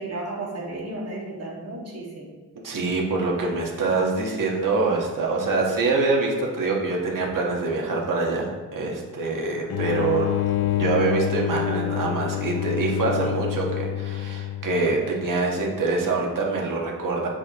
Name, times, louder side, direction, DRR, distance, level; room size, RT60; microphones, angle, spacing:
voice 1, 0.0-2.3, right 2 dB, 45° right, -4 dB, 2.0 m, -33 dB
voice 2, 2.6-17.3, right 3 dB, 60° right, -1 dB, 1.5 m, -25 dB
sound 1, 9.7-15.1, left 11 dB, 90° left, 0.5 m, -27 dB
7.6 x 6.2 x 3.0 m, 1.4 s
wide cardioid pair, 130°, 36 cm